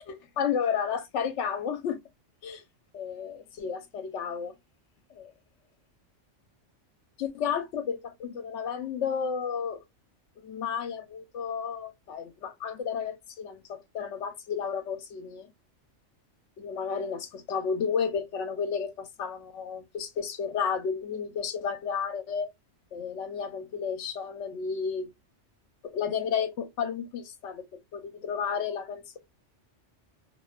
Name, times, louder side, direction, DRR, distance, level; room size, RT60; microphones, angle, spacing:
voice 1, 0.1-2.0 2.4-2.6 2.9-4.5 5.2-5.3 7.2-9.8 10.4-15.5 16.6-22.5 22.9-25.1 25.9-29.2, left 6 dB, 75° left, 0.9 m, -32 dB
2.6 x 2.1 x 2.3 m
omnidirectional pair, 1.3 m